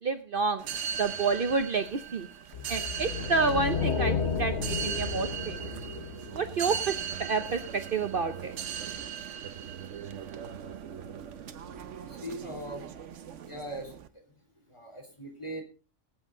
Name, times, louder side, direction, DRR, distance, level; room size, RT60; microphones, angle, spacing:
voice 1, 0.0-0.6 1.0-2.3 2.7-5.7 6.3-8.6, right 4 dB, 50° right, 9 dB, 0.9 m, -29 dB
sound 1, 0.6-14.1, right 8 dB, 70° right, 1.2 m, -38 dB
sound 2, 2.5-7.0, left 6 dB, 65° left, 1.1 m, -32 dB
voice 2, 12.1-12.9 13.5-13.9 14.7-15.6, right 1 dB, 25° left, 4 dB, 3.4 m, -40 dB
21.0 x 8.1 x 3.8 m, 0.33 s
omnidirectional pair, 1.3 m